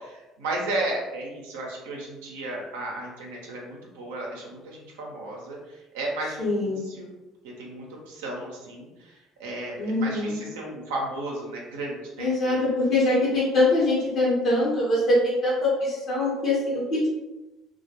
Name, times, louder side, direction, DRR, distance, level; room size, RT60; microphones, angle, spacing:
voice 1, 0.0-5.6 5.9-7.1 7.4-12.6, right 2 dB, 90° right, -2 dB, 0.6 m, -34 dB
voice 2, 6.4-6.8 9.8-10.4 12.2-17.1, left 2 dB, 60° left, -6 dB, 0.8 m, -23 dB
2.2 x 2.2 x 2.8 m, 1.1 s
supercardioid pair, 80°, 0 cm